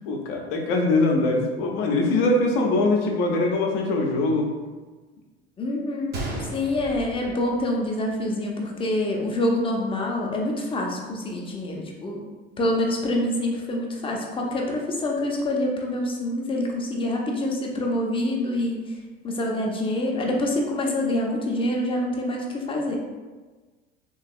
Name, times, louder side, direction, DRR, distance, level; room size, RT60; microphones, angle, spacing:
voice 1, 0.0-4.5, left 2 dB, 60° left, 1 dB, 0.7 m, -22 dB
voice 2, 5.6-12.3 12.6-18.8 19.2-23.0, left 1 dB, 15° left, 0 dB, 0.6 m, -26 dB
Gunshot gunfire, 6.1-8.1 8.4-8.5 9.2-9.4, right 2 dB, 35° right, 0.7 m, -35 dB
3.2 x 3.0 x 2.4 m, 1.3 s
figure-of-eight pair, 65°, 31 cm